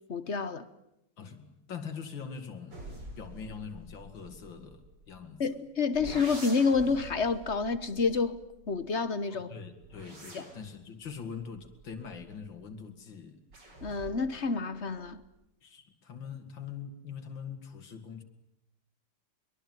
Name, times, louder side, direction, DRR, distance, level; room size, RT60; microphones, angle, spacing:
voice 1, 0.1-0.7 5.4-8.4 8.7-9.5 10.3-10.4 13.8-15.2, left 4 dB, 40° left, 1.3 m, -29 dB
voice 2, 1.2-2.8 3.2-5.4 9.3-13.4 15.6-18.2, left 6 dB, 85° left, 3.1 m, -43 dB
sound 1, 2.7-5.4 5.9-9.1 9.6-12.7 13.5-14.4 14.7-15.3, right 1 dB, 65° right, 5.9 m, -47 dB
23.5 x 23.0 x 9.3 m
omnidirectional pair, 2.0 m